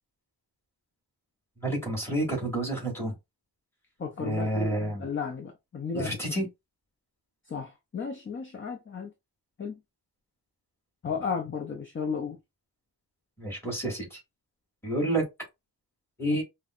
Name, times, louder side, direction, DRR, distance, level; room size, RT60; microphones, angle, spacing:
voice 1, 1.6-3.1 4.2-5.1 5.9-6.5 13.4-14.2 14.8-15.2 16.2-16.4, right 1 dB, 5° left, 1.9 m, -29 dB
voice 2, 4.0-6.4 7.5-9.1 9.6-9.8 11.0-12.4, left 5 dB, 30° left, 0.6 m, -34 dB
5.3 x 2.1 x 2.4 m
wide cardioid pair, 140°, 42 cm